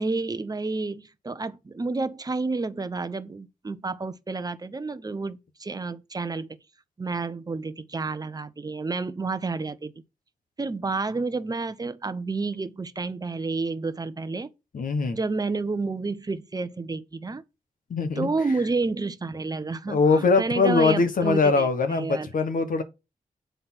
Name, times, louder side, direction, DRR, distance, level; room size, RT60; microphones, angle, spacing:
voice 1, 0.0-6.5 7.0-10.0 10.6-14.5 15.1-17.4 18.2-22.3, right 3 dB, 25° right, 0.8 m, -30 dB
voice 2, 14.7-15.2 17.9-18.3 19.9-22.8, left 4 dB, 70° left, 1.3 m, -22 dB
8.0 x 3.9 x 6.2 m
wide cardioid pair, 90°, 15 cm